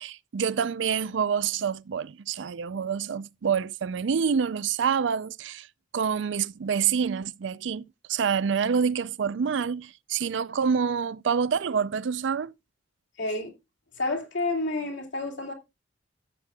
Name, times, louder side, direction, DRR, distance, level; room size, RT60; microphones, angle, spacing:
voice 1, 0.0-5.7 5.9-12.5, right 6 dB, 75° right, 0.4 m, -27 dB
voice 2, 13.2-13.5 14.0-15.5, left 2 dB, 75° left, 2.6 m, -29 dB
14.0 x 7.4 x 2.3 m
head